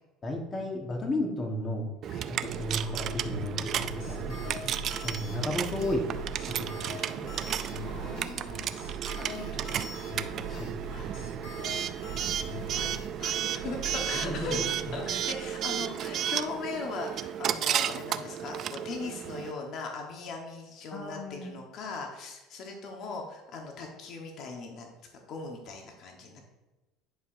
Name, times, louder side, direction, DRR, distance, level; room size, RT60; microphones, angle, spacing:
voice 1, 0.2-1.9 2.3-6.0 6.5-7.3 10.5-10.7 14.2-14.4 15.1-15.2 20.9-21.5, left 1 dB, 25° left, 2 dB, 1.3 m, -34 dB
Coin (dropping) / Alarm, 2.0-19.5, right 10 dB, 45° right, 0.4 m, -33 dB
sound 1, 2.4-16.1, right 5 dB, 70° right, 2.1 m, -42 dB
sound 2, 3.7-13.1, left 5 dB, 75° left, 1.8 m, -44 dB
voice 2, 7.8-8.7 9.3-10.0 10.9-11.1 12.7-12.9 13.2-24.9 25.3-26.4, left 4 dB, 55° left, 1 dB, 1.1 m, -39 dB
10.5 x 4.8 x 2.6 m, 1.1 s
supercardioid pair, 120°, 0 cm